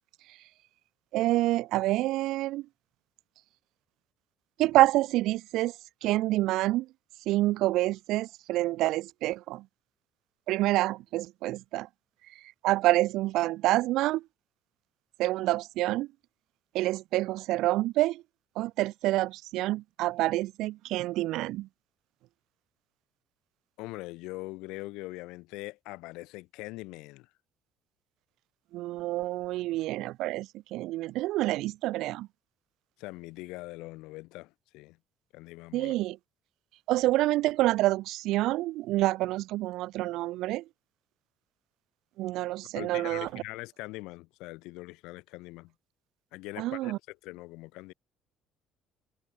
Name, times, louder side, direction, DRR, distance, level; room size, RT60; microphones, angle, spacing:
voice 1, 1.1-2.7 4.6-5.7 6.0-6.9 7.3-9.6 10.5-11.9 12.6-14.2 15.2-16.1 16.7-18.2 18.5-21.7 28.7-32.3 35.7-36.2 36.9-40.6 42.2-43.4 46.6-47.0, right 17 dB, 75° right, 1.4 m, -27 dB
voice 2, 23.8-27.3 33.0-35.0 35.3-35.9 42.7-45.7 46.3-47.9, left 22 dB, 85° left, 6.4 m, -42 dB
cardioid pair, 130°, 0 cm